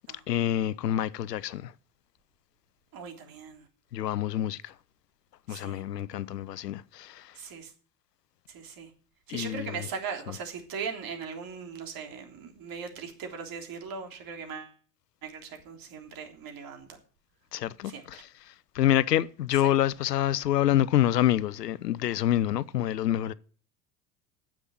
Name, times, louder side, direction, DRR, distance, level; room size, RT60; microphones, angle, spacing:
voice 1, 0.3-1.7 3.9-4.7 5.5-7.4 9.3-9.9 17.5-23.3, left 12 dB, 90° left, 0.6 m, -27 dB
voice 2, 2.9-3.7 5.5-5.8 7.4-7.7 8.5-8.9 9.3-14.8 15.2-17.0 17.8-18.2 19.6-19.7, right 6 dB, 45° right, 3.4 m, -39 dB
9.8 x 7.5 x 8.8 m
hypercardioid pair, 75°, 47 cm